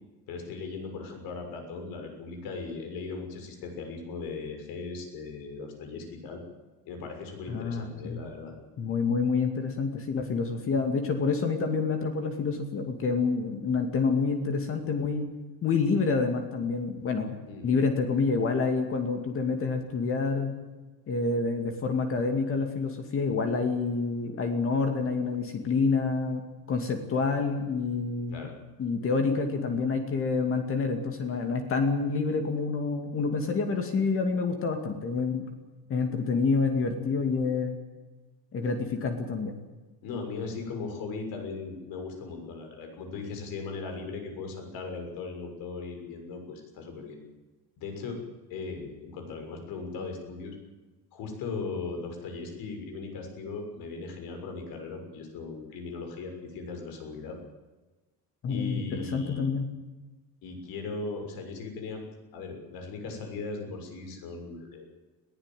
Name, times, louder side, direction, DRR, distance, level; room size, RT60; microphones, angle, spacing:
voice 1, 0.3-6.4 6.8-8.5 17.5-17.6 28.3-28.5 40.0-47.2 47.8-48.2 48.5-50.5 51.1-57.4 58.5-59.5 60.4-62.0 62.3-64.8, left 4 dB, 65° left, 4 dB, 6.6 m, -38 dB
voice 2, 7.5-8.2 8.8-15.3 15.6-17.4 17.6-20.5 21.1-26.4 26.7-28.5 28.8-35.4 35.9-37.8 38.5-39.6 58.4-59.7, left 4 dB, 35° left, 5 dB, 2.5 m, -28 dB
21.0 x 16.0 x 9.3 m, 1.2 s
cardioid pair, 170°, 38 cm